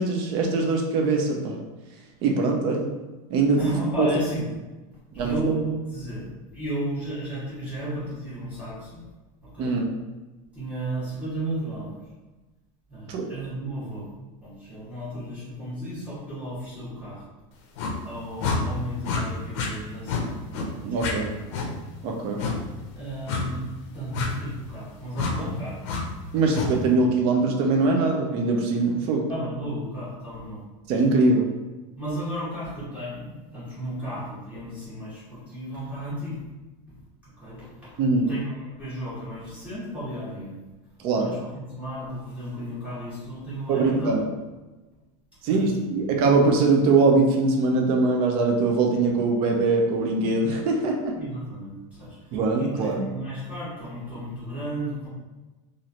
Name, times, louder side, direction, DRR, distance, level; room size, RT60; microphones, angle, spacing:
voice 1, 0.0-1.6 2.2-2.9 3.3-3.6 4.0-4.1 5.1-5.3 9.6-9.8 13.1-13.3 20.8-21.3 22.0-22.4 26.3-29.3 30.9-31.4 38.0-38.3 41.0-41.3 43.7-44.3 45.4-51.1 52.3-53.1, right 3 dB, 35° right, 1 dB, 0.4 m, -22 dB
voice 2, 3.6-4.5 5.1-9.0 9.4-9.8 10.5-11.9 12.9-14.1 14.4-17.2 18.0-20.4 20.8-21.4 22.9-23.6 23.9-25.8 26.3-26.5 29.3-30.6 32.0-36.4 37.2-38.0 38.3-40.6 41.2-44.1 45.4-45.7 51.1-52.2 52.6-55.1, right 1 dB, 10° right, -11 dB, 1.4 m, -34 dB
sound 1, 17.8-18.0 18.4-18.6 19.0-19.2 19.5-19.7 20.1-20.2 20.5-20.7 21.0-21.1 21.5-21.7 22.4-22.6 23.3-23.5 24.1-24.3 25.1-25.3 25.8-26.0 26.5-26.7, left 5 dB, 55° left, 0.6 m, -27 dB
3.0 x 2.5 x 2.7 m, 1.2 s
supercardioid pair, 170°, 17 cm